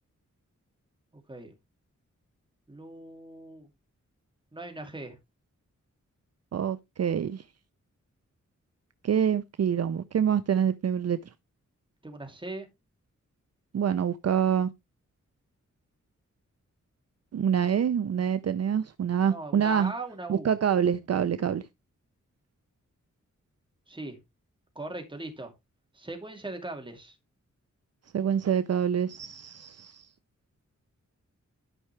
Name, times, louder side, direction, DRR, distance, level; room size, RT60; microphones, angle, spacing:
voice 1, 1.1-1.5 2.7-3.7 4.5-5.2 12.0-12.7 19.3-20.5 23.9-24.2 24.7-25.5 25.9-27.2, right 2 dB, 15° right, 2.4 m, -39 dB
voice 2, 6.5-7.4 9.0-11.2 13.7-14.7 17.3-19.9 20.3-21.6 28.1-30.1, right 8 dB, 60° right, 0.5 m, -26 dB
12.0 x 5.7 x 3.2 m
wide cardioid pair, 125°, 30 cm